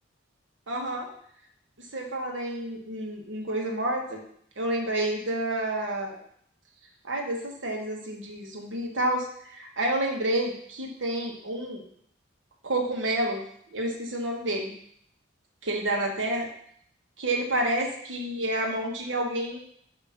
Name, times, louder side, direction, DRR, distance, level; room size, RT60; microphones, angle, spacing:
voice 1, 0.7-1.1 1.9-4.2 4.6-6.2 7.0-9.3 9.5-11.8 12.6-13.4 13.7-14.7 15.6-16.5 17.2-19.6, right 1 dB, 70° right, 1 dB, 1.3 m, -29 dB
7.2 x 2.9 x 5.8 m, 0.66 s
head